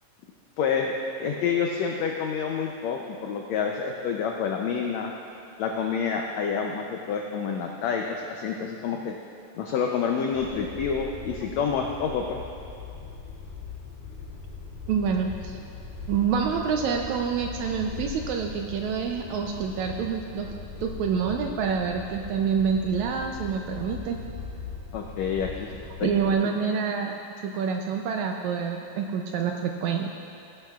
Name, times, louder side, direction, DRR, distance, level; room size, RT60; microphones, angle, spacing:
voice 1, 0.6-0.9 1.2-5.1 5.6-9.1 9.5-12.4 24.9-25.7 26.0-26.1, left 6 dB, 85° left, 1 dB, 1.5 m, -28 dB
sound 1, 10.3-26.3, left 5 dB, 70° left, 2.6 m, -40 dB
voice 2, 14.9-15.6 16.1-24.2 26.0-30.1, right 6 dB, 80° right, 3 dB, 1.7 m, -27 dB
16.5 x 11.5 x 2.4 m, 2.5 s
omnidirectional pair, 3.9 m